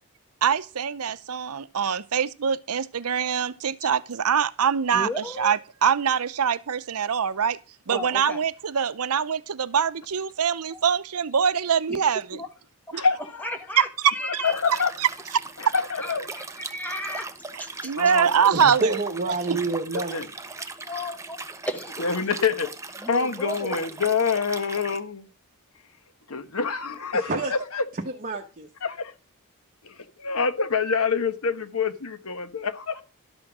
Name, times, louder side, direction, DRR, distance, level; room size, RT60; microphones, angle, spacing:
voice 1, 0.4-5.1 5.4-7.6 7.9-12.4 12.9-13.0 14.3-14.4 17.8-19.0, right 7 dB, 75° right, 0.6 m, -24 dB
voice 2, 4.9-5.5 7.9-8.4 10.7-10.8 11.9-12.0 12.4-12.5 13.4-14.8 16.0-18.0 20.8-21.4 21.6-22.0 23.0-23.8, left 1 dB, 5° left, 1.5 m, -34 dB
voice 3, 12.9-13.6 14.2-14.9 15.6-16.3 18.0-18.5 19.9-20.3 22.0-25.3 26.3-27.9 28.8-29.1 29.8-33.0, left 5 dB, 70° left, 1.2 m, -26 dB
Liquid, 14.4-25.0, right 3 dB, 15° right, 0.8 m, -39 dB
voice 4, 18.5-20.2 27.3-27.5 28.2-28.7, right 2 dB, 40° right, 1.1 m, -28 dB
12.0 x 6.1 x 6.1 m
head